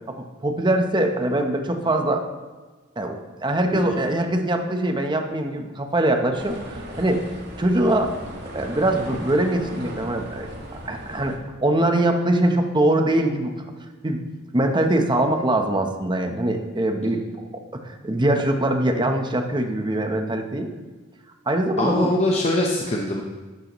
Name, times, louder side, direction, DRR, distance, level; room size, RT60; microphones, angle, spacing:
voice 1, 0.1-2.2 3.0-6.6 7.0-7.2 7.6-8.1 8.5-10.5 10.9-13.5 14.0-14.2 14.5-17.2 17.5-20.7 21.5-22.1, right 1 dB, 25° right, 4 dB, 1.0 m, -22 dB
sound 1, 6.3-11.4, equal, 60° right, 1.9 m, -36 dB
voice 2, 21.8-23.2, left 1 dB, 35° left, -1 dB, 0.9 m, -23 dB
12.0 x 8.7 x 3.1 m, 1.3 s
head